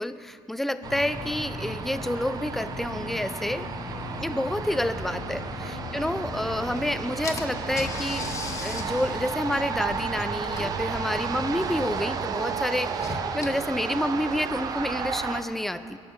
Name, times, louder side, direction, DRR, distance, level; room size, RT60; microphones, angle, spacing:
voice 1, 0.0-3.7 4.2-8.3 8.6-16.0, left 1 dB, 5° left, 12 dB, 0.4 m, -29 dB
sound 1, 0.8-12.0, left 2 dB, 85° left, 2.0 m, -38 dB
sound 2, 0.8-15.4, right 6 dB, 40° right, 0.7 m, -33 dB
Car / Engine, 6.8-6.9 7.2-14.7, left 4 dB, 30° left, 1.1 m, -40 dB
20.0 x 11.5 x 3.6 m, 2.4 s
cardioid pair, 120°, 10 cm